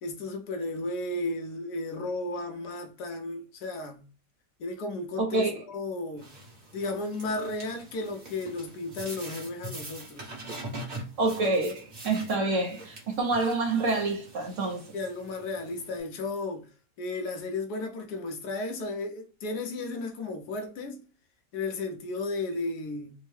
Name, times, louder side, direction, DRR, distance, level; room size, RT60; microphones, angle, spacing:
voice 1, 0.0-4.0 4.6-6.3 6.7-10.3 14.9-16.7 17.0-21.0 21.5-23.1, left 2 dB, 70° left, 1.2 m, -34 dB
voice 2, 5.2-5.5 11.2-14.9, right 3 dB, 60° right, 0.9 m, -27 dB
sound 1, 6.2-16.0, right 2 dB, 30° right, 0.9 m, -44 dB
3.5 x 2.1 x 3.2 m
omnidirectional pair, 1.8 m